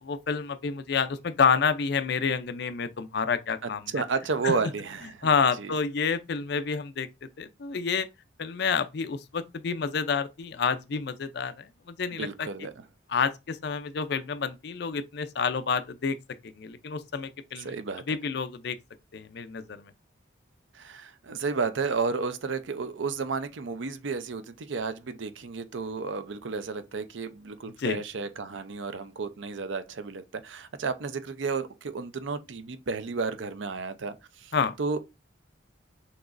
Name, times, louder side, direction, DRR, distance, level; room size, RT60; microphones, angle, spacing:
voice 1, 0.0-3.8 4.4-4.5 5.2-7.1 7.4-8.1 8.4-12.5 13.1-16.2 16.4-17.7 18.1-18.8 19.1-19.9 27.8-28.0 34.5-34.7, left 5 dB, 55° left, 0.4 m, -28 dB
voice 2, 3.6-5.3 5.6-5.7 12.1-12.8 17.6-18.2 20.7-35.0, right 4 dB, 75° right, 0.6 m, -32 dB
6.0 x 3.0 x 2.5 m
head